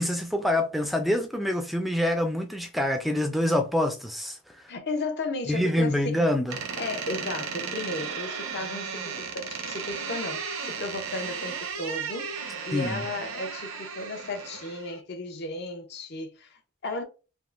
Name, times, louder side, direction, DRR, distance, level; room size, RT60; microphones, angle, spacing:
voice 1, 0.0-4.6 5.5-6.6 12.7-13.1, left 1 dB, ahead, 0.4 m, -26 dB
voice 2, 4.7-6.3 6.8-17.0, left 2 dB, 50° left, 0.6 m, -34 dB
Door, 6.5-15.0, right 6 dB, 70° right, 0.7 m, -35 dB
3.4 x 2.5 x 2.4 m
head